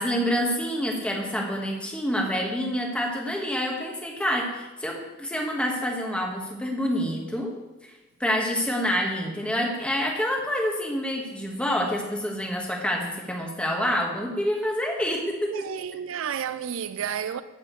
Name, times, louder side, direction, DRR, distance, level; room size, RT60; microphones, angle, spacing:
voice 1, 0.0-7.5 8.2-15.7, equal, 5° left, 1.4 m, -27 dB
voice 2, 15.5-17.4, right 8 dB, 65° right, 0.4 m, -31 dB
12.5 x 8.6 x 3.1 m
head